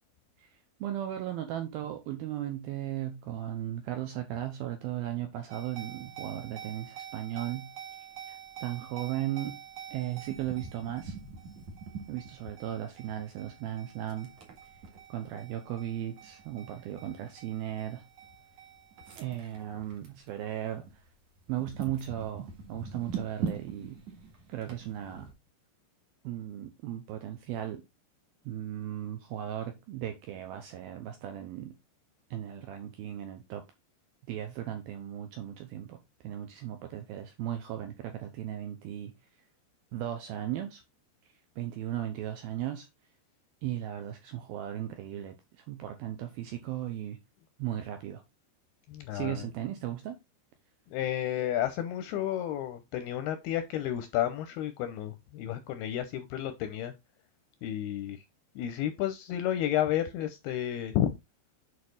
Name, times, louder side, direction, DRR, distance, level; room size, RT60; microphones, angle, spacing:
voice 1, 0.8-7.7 8.3-9.6 9.9-11.2 12.1-14.3 15.1-18.0 19.2-20.9 21.5-24.0 24.5-25.3 26.2-27.8 28.5-31.7 32.3-33.6 34.3-36.0 36.2-39.1 39.9-40.8 41.6-42.9 43.6-47.2 47.6-48.2 49.1-50.2, right 12 dB, 80° right, 2.2 m, -36 dB
sound 1, 5.5-20.3 20.6-21.0 21.5-25.3, right 6 dB, 50° right, 2.3 m, -44 dB
voice 2, 48.9-49.4 50.9-56.9 57.6-58.2 58.6-61.1, left 11 dB, 80° left, 2.3 m, -31 dB
8.6 x 4.8 x 3.9 m
omnidirectional pair, 5.2 m